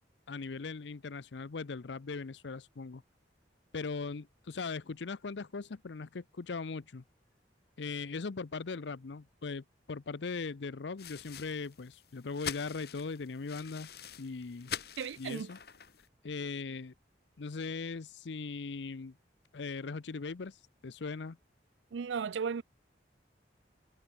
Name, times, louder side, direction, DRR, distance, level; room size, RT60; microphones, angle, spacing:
voice 1, 0.3-3.0 3.7-7.0 7.8-13.9 14.2-14.7 15.2-15.6 16.2-16.9 17.4-19.1 19.5-21.4, left 4 dB, 80° left, 0.6 m, -39 dB
sound 1, 11.0-16.1, left 8 dB, 60° left, 2.1 m, -45 dB
voice 2, 15.0-15.5 21.9-22.6, right 6 dB, 90° right, 0.4 m, -35 dB
head